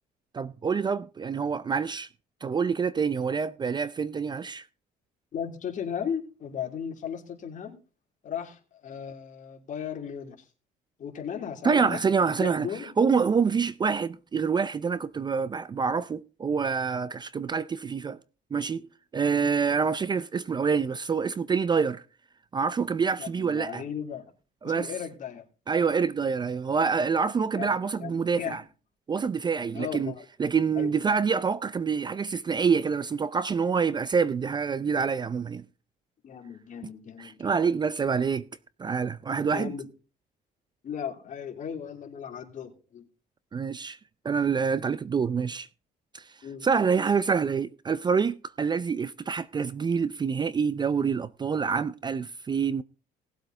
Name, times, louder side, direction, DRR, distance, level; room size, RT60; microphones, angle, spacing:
voice 1, 0.3-2.1 2.4-4.7 11.6-12.7 13.0-18.2 18.5-18.9 19.1-22.0 22.5-23.8 24.6-24.9 25.7-28.6 29.1-30.1 30.4-35.6 37.2-38.4 38.8-39.7 43.5-44.0 44.2-45.7 46.1-46.3 46.6-52.8, right 5 dB, 25° right, 0.5 m, -26 dB
voice 2, 5.3-7.8 8.2-10.5 11.0-12.0 12.4-12.9 19.3-19.6 23.2-24.3 24.6-25.4 27.5-28.6 29.7-30.2 30.7-30.9 36.2-37.5 39.5-39.9 40.8-43.0 46.4-46.7, left 8 dB, 50° left, 2.8 m, -36 dB
18.5 x 7.9 x 3.8 m
cardioid pair, 110°, 17 cm